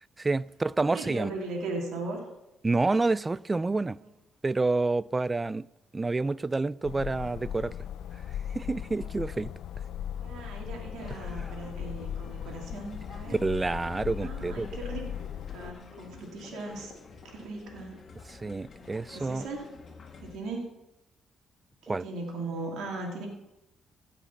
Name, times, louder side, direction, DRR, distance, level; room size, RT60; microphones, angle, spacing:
voice 1, 0.2-1.3 2.6-4.0 4.4-5.7 5.9-7.7 8.5-9.5 13.4-14.7 18.4-19.4 21.9-22.0, right 3 dB, 20° right, 0.3 m, -28 dB
voice 2, 0.8-2.2 4.0-4.1 10.2-13.4 14.2-15.1 15.5-16.9 17.3-18.0 19.1-19.7 20.2-20.7 21.8-23.3, right 2 dB, 85° right, 2.6 m, -38 dB
sound 1, 6.8-15.7, left 9 dB, 75° left, 0.5 m, -38 dB
sound 2, 11.0-20.4, left 4 dB, 45° left, 1.7 m, -49 dB
16.5 x 5.9 x 6.1 m
cardioid pair, 90°, 0 cm